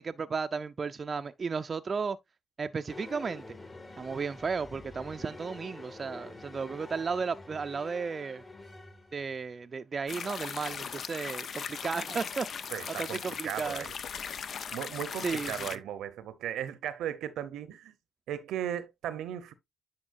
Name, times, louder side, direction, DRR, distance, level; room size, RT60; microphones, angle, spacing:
voice 1, 0.0-2.2 2.6-3.4 4.0-8.4 9.1-12.7 13.0-13.8 15.2-15.5, right 5 dB, 45° right, 0.4 m, -34 dB
sound 1, 2.9-9.4, left 2 dB, 35° left, 2.2 m, -47 dB
sound 2, 10.1-15.8, left 6 dB, 60° left, 0.6 m, -38 dB
voice 2, 12.7-13.9 14.7-17.9 18.3-19.5, right 10 dB, 80° right, 0.7 m, -36 dB
9.6 x 4.3 x 2.5 m
supercardioid pair, 55°, 0 cm